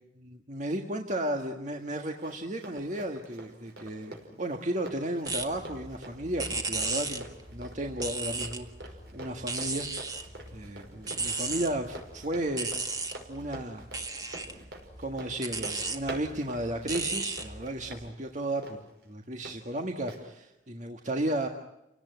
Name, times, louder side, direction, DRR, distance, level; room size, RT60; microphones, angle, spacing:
voice 1, 0.2-9.9 10.5-12.7 13.3-13.9 14.4-14.6 15.0-21.5, right 1 dB, 40° right, 3 dB, 1.7 m, -34 dB
Run, 1.7-19.6 20.1-20.2, right 1 dB, 65° right, 5.6 m, -46 dB
sound 1, 5.3-18.1, right 3 dB, 20° right, 1.8 m, -36 dB
29.5 x 18.0 x 9.4 m, 0.89 s
head